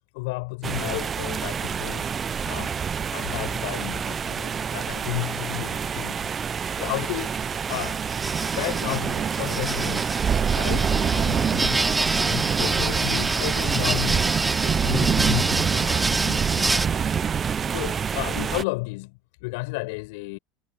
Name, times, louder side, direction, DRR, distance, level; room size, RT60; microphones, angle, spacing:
voice 1, 0.1-2.1 2.5-2.7 3.1-6.3 6.8-7.4 7.7-8.0 8.5-10.1 10.5-11.8 12.2-16.7 17.7-20.4, left 26 dB, 70° left, 6.7 m, -32 dB
sound 1, 0.6-18.6, right 7 dB, 25° right, 0.7 m, -26 dB
sound 2, 7.7-16.9, right 2 dB, 10° right, 4.8 m, -28 dB
supercardioid pair, 120°, 0 cm